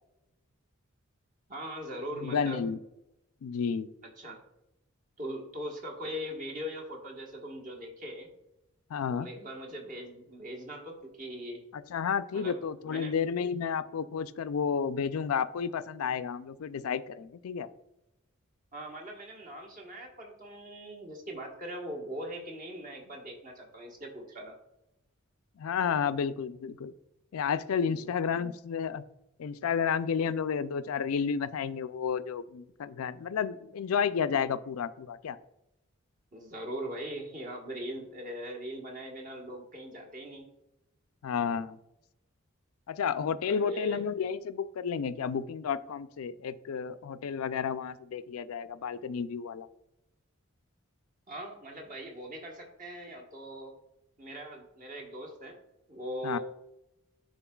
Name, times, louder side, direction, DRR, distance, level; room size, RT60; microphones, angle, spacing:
voice 1, 1.5-2.6 4.0-4.4 5.2-8.3 9.1-11.6 12.3-12.6 12.9-13.1 18.7-24.6 27.8-28.0 36.3-40.5 43.5-44.0 51.3-53.8 54.2-55.6 55.9-56.4, equal, 40° right, 1 dB, 1.3 m, -40 dB
voice 2, 2.2-2.8 3.4-3.9 8.9-9.3 11.7-17.7 25.6-26.9 27.3-29.0 29.4-35.4 41.2-41.8 42.9-49.7 56.2-56.4, left 6 dB, 85° left, 13 dB, 0.4 m, -31 dB
11.0 x 3.9 x 2.3 m, 0.88 s
head